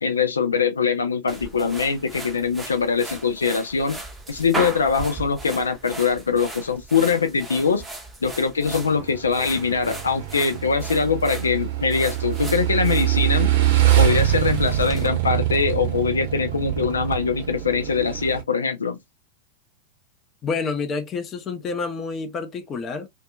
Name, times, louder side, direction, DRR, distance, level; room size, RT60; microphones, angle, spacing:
voice 1, 0.0-4.0 4.3-7.8 8.2-13.5 14.0-19.0, left 5 dB, 75° left, 0.3 m, -22 dB
sound 1, 1.3-15.1, right 2 dB, 10° right, 0.7 m, -37 dB
Motorcycle / Engine, 8.7-18.4, right 12 dB, 55° right, 0.7 m, -24 dB
voice 2, 20.4-23.1, left 4 dB, 25° left, 0.6 m, -28 dB
2.6 x 2.2 x 2.2 m
figure-of-eight pair, 90°, 0 cm